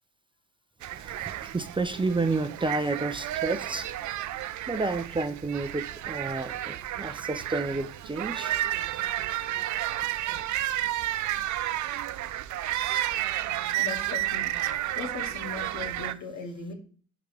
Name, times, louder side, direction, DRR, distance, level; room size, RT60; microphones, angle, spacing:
sound 1, 0.8-16.1, right 13 dB, 70° right, 0.5 m, -31 dB
voice 1, 1.5-3.9 4.7-8.6, right 3 dB, 15° right, 0.6 m, -30 dB
voice 2, 13.8-16.7, left 4 dB, 70° left, 2.1 m, -39 dB
11.0 x 3.8 x 3.4 m
cardioid pair, 90°, 30 cm